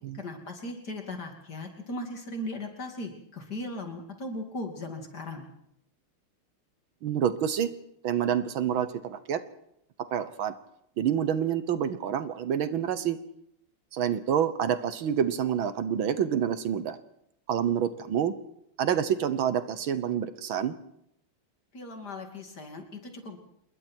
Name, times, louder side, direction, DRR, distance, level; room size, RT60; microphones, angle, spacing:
voice 1, 0.1-5.5 21.7-23.4, left 1 dB, 50° left, 4 dB, 3.3 m, -38 dB
voice 2, 7.0-7.7 8.0-9.4 10.1-10.5 11.0-13.2 13.9-17.0 17.5-18.3 18.8-20.7, right 9 dB, 70° right, 12 dB, 1.8 m, -27 dB
27.0 x 21.5 x 4.6 m, 0.76 s
omnidirectional pair, 2.3 m